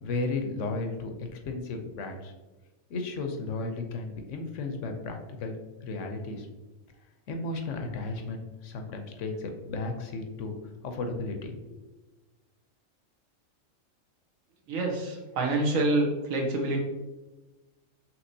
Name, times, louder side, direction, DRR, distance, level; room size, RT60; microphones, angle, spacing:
voice 1, 0.0-2.3 2.9-6.5 7.3-10.5 10.8-11.8, left 3 dB, 70° left, 4 dB, 0.9 m, -34 dB
voice 2, 14.7-16.8, right 2 dB, 80° right, 1 dB, 1.3 m, -27 dB
5.8 x 2.9 x 2.6 m, 1.1 s
omnidirectional pair, 1.4 m